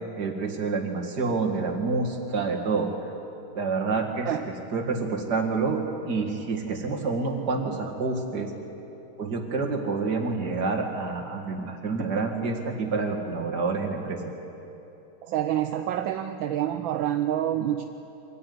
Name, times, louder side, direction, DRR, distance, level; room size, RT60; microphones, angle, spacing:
voice 1, 0.2-2.9 3.6-8.5 9.2-14.3, right 4 dB, 50° right, 1 dB, 2.5 m, -28 dB
voice 2, 15.2-17.8, right 11 dB, 70° right, 7 dB, 1.4 m, -27 dB
24.0 x 14.5 x 9.5 m, 3.0 s
omnidirectional pair, 2.4 m